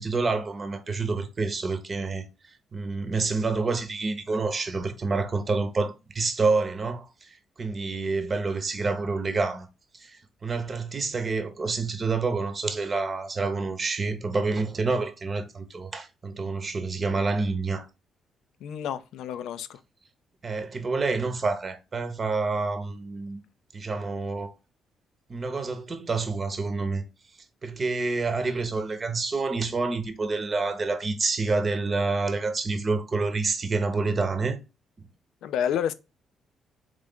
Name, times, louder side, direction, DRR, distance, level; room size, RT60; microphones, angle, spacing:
voice 1, 0.0-9.7 9.9-17.9 20.4-23.4 23.7-24.5 25.3-27.0 27.6-34.6, right 3 dB, 35° right, 0.9 m, -28 dB
voice 2, 18.6-19.8 35.4-35.9, left 9 dB, 80° left, 0.4 m, -29 dB
4.0 x 3.2 x 3.7 m
cardioid pair, 90°, 0 cm